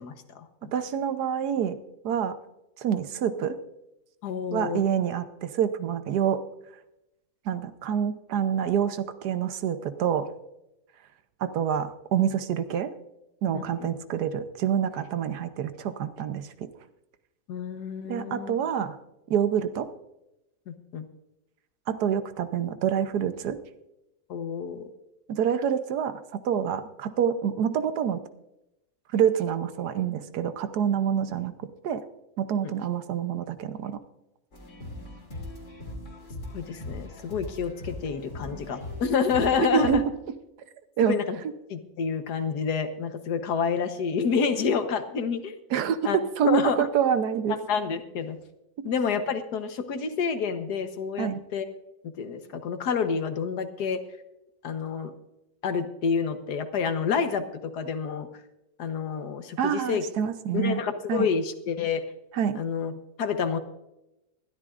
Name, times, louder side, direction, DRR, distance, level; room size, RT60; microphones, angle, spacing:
voice 1, 0.0-0.7 4.2-4.8 13.5-13.9 17.5-18.6 20.7-21.0 24.3-24.9 32.6-32.7 36.5-40.0 41.0-41.4 41.7-45.5 46.0-46.2 46.4-46.9 47.5-48.4 48.8-51.6 52.2-54.0 54.6-55.1 55.6-58.3 58.8-60.0 60.5-62.0 62.5-62.9 63.2-63.6, left 6 dB, 90° left, 8 dB, 1.6 m, -28 dB
voice 2, 0.7-1.8 2.0-2.3 2.8-3.6 4.5-6.4 7.5-10.3 11.4-12.9 13.4-16.7 18.1-19.0 19.3-19.9 21.9-23.6 25.3-28.2 29.1-31.5 31.8-32.0 32.4-34.0 39.6-40.0 41.0-41.2 45.7-47.5 51.2-51.4 59.6-60.8 61.1-61.3 62.3-62.6, right 8 dB, 85° right, 11 dB, 1.4 m, -27 dB
sound 1, 34.5-40.0, left 1 dB, 50° left, 2.6 m, -40 dB
20.5 x 13.0 x 2.5 m, 0.91 s
omnidirectional pair, 1.7 m